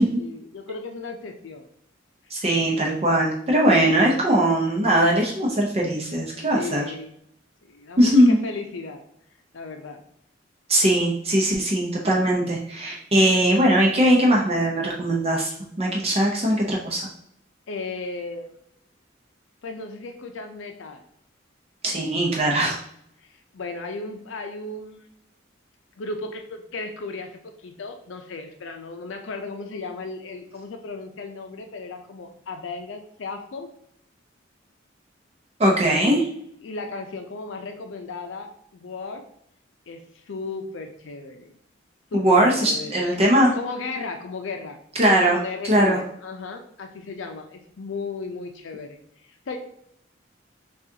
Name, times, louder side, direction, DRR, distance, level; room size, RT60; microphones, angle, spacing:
voice 1, 0.0-1.7 6.3-7.1 7.6-9.0 9.5-10.0 17.7-18.4 19.6-21.0 23.5-25.0 26.0-27.3 27.6-33.7 36.6-39.2 39.9-40.0 40.3-41.5 42.1-44.8 45.2-49.0 49.5-49.6, left 3 dB, 75° left, 5 dB, 0.5 m, -35 dB
voice 2, 2.3-6.8 8.0-8.4 10.7-17.1 21.8-22.8 35.6-36.3 42.1-43.5 44.9-45.4 45.6-46.0, right 1 dB, 35° right, -2 dB, 0.7 m, -20 dB
6.1 x 2.4 x 2.7 m, 0.72 s
head